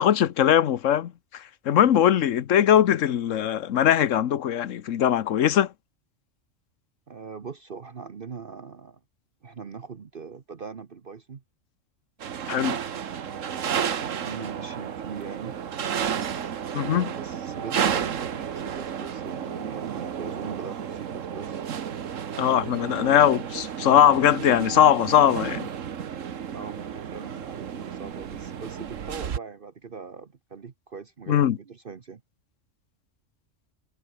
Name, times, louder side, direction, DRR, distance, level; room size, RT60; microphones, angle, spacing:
voice 1, 0.0-5.7 12.5-12.8 16.7-17.1 22.4-25.7 31.3-31.6, left 10 dB, 85° left, 1.2 m, -21 dB
voice 2, 7.1-9.0 9.4-11.4 12.6-15.6 16.7-21.6 26.5-32.2, right 5 dB, 45° right, 1.2 m, -41 dB
sound 1, 12.2-29.4, right 8 dB, 90° right, 1.5 m, -32 dB
omnidirectional pair, 1.3 m